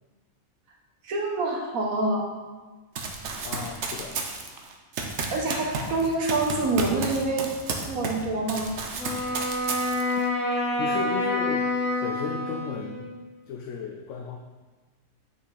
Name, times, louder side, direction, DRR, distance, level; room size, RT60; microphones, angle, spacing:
voice 1, 1.0-2.2 5.3-7.5 7.8-8.8, right 2 dB, 85° right, 0 dB, 1.6 m, -26 dB
Run, 3.0-8.2 8.5-10.2, right 4 dB, 60° right, 1.0 m, -32 dB
voice 2, 3.4-4.2 10.8-11.7 12.0-13.1 13.5-14.4, left 6 dB, 70° left, 3 dB, 0.8 m, -34 dB
Wind instrument woodwind instrument, 9.0-13.1, left 2 dB, 90° left, 1.6 m, -27 dB
6.1 x 5.4 x 4.0 m, 1.3 s
omnidirectional pair, 1.4 m